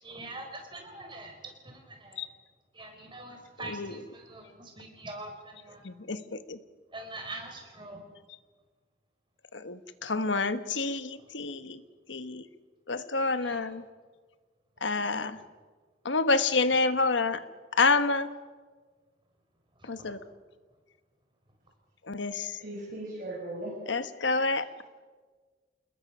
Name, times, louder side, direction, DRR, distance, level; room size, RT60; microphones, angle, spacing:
voice 1, 0.0-1.3 1.6-2.2 2.7-5.8 6.9-8.0 13.4-13.6 19.8-20.1, right 2 dB, 25° right, 3 dB, 4.9 m, -43 dB
voice 2, 5.8-6.6 9.5-11.8 12.1-12.4 12.9-13.8 14.8-15.4 16.0-17.4 17.7-18.3 19.8-20.2 22.0-22.6 23.9-24.8, left 3 dB, 80° left, 11 dB, 1.2 m, -28 dB
voice 3, 22.6-23.7, right 1 dB, 45° right, -3 dB, 5.5 m, -37 dB
28.5 x 20.5 x 6.2 m, 1.5 s
head